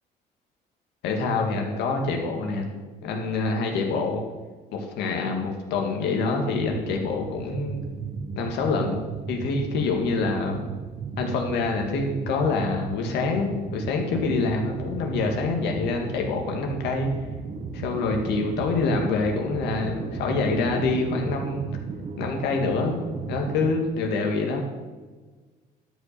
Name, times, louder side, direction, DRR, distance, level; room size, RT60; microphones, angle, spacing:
voice 1, 1.0-2.7 3.0-4.2 4.7-7.8 8.3-9.0 9.3-10.7 11.2-17.1 17.7-21.7 22.2-23.0 23.3-24.6, left 3 dB, 80° left, 2 dB, 2.0 m, -26 dB
sound 1, 6.5-23.7, right 5 dB, 40° right, 1.2 m, -35 dB
12.0 x 5.4 x 6.8 m, 1.3 s
cardioid pair, 110°, 17 cm